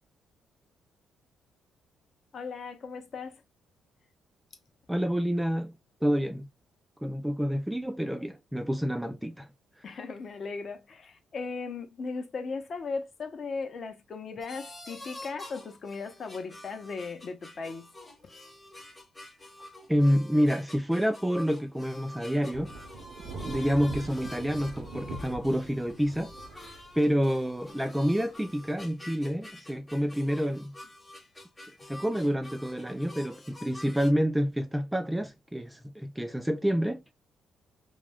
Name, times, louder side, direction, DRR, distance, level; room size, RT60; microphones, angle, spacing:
voice 1, 2.3-3.4 9.8-17.9 18.2-18.3, left 4 dB, 50° left, 0.7 m, -37 dB
voice 2, 4.9-5.7 6.0-6.5 7.0-9.5 19.9-22.7 23.4-26.3 26.6-30.7 31.9-37.0, equal, 5° right, 0.4 m, -28 dB
sound 1, 14.4-34.1, left 1 dB, 15° left, 0.8 m, -48 dB
Thunder / Rain, 22.5-28.9, right 3 dB, 70° right, 0.6 m, -43 dB
2.3 x 2.0 x 3.5 m
cardioid pair, 90°, 0 cm